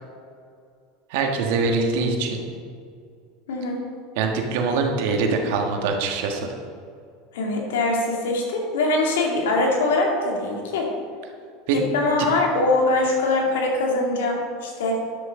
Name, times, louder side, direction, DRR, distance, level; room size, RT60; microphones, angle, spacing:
voice 1, 1.1-2.4 4.1-6.5 11.7-11.8, right 4 dB, 70° right, 2 dB, 1.7 m, -23 dB
voice 2, 7.3-10.9 11.7-14.9, left 2 dB, 85° left, 0 dB, 2.3 m, -22 dB
11.0 x 6.7 x 5.2 m, 2.3 s
supercardioid pair, 110°, 0 cm